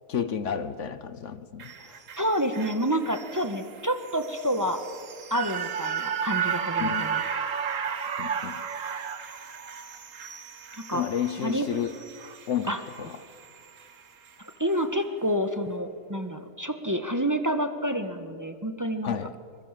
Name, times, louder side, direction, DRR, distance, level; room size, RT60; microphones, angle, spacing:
voice 1, 0.1-2.0 6.8-7.2 8.2-8.5 10.9-12.0 12.5-13.1 19.0-19.3, left 8 dB, 65° left, 13 dB, 1.3 m, -31 dB
sound 1, 1.6-13.9 14.3-14.4, right 7 dB, 80° right, 1.6 m, -34 dB
voice 2, 2.2-4.8 5.3-7.2 10.7-11.0 11.4-11.7 12.7-12.8 14.6-19.1, equal, 15° right, 7 dB, 1.4 m, -28 dB
25.5 x 22.0 x 7.6 m, 2.1 s
omnidirectional pair, 1.3 m